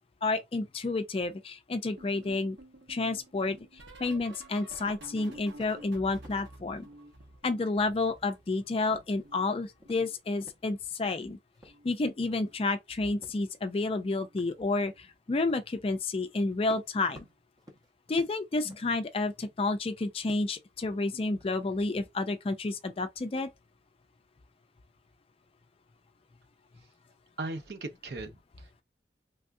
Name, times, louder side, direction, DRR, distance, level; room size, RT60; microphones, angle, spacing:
voice 1, 0.2-2.6 2.9-3.6 4.0-6.9 7.4-11.4 11.8-17.3 18.1-23.5, left 3 dB, 30° left, 0.4 m, -30 dB
sound 1, 2.0-8.7 9.0-10.6 11.6-12.0 12.2-12.6 14.1-14.4 14.7-15.0 16.5-16.6, right 1 dB, 80° right, 1.1 m, -52 dB
sound 2, 2.1-2.4 2.7-3.0 3.5-3.9 4.3-4.6 4.9-5.2 5.4-6.4 6.8-7.1 7.4-7.8 8.1-9.5 9.8-10.1 10.4-11.3 11.5-12.5 13.2-13.4 13.9-14.0 14.4-14.6 15.4-15.7 16.3-16.4 16.6-19.8 20.2-20.6 21.1-21.9, equal, 20° right, 0.7 m, -55 dB
voice 2, 27.4-28.8, right 2 dB, 65° right, 0.6 m, -39 dB
3.4 x 2.3 x 2.5 m
head